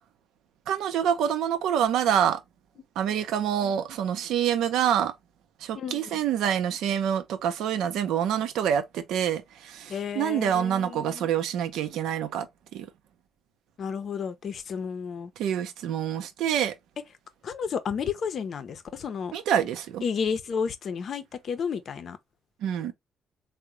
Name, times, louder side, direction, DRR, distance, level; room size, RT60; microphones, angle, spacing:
voice 1, 0.7-2.4 3.0-5.1 5.6-12.9 15.4-16.7 19.3-20.0 22.6-22.9, right 9 dB, 85° right, 0.6 m, -26 dB
voice 2, 5.7-6.2 9.9-11.3 13.8-15.3 17.4-19.3 20.0-22.2, left 6 dB, 55° left, 0.5 m, -32 dB
3.7 x 2.1 x 2.9 m
cardioid pair, 90°, 0 cm